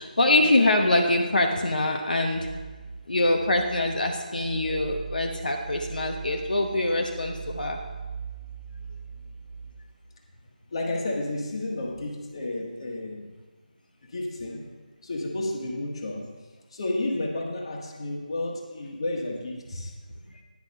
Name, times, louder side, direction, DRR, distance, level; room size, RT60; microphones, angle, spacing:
voice 1, 0.0-2.6 3.1-7.8, left 2 dB, 70° left, 2 dB, 0.9 m, -24 dB
sound 1, 2.3-9.7, right 6 dB, 15° right, 1.0 m, -40 dB
voice 2, 10.7-13.3 14.1-14.7 15.0-16.2 16.7-20.0, left 2 dB, 35° left, 0 dB, 1.4 m, -31 dB
10.5 x 5.5 x 5.4 m, 1.3 s
figure-of-eight pair, 170°, 5 cm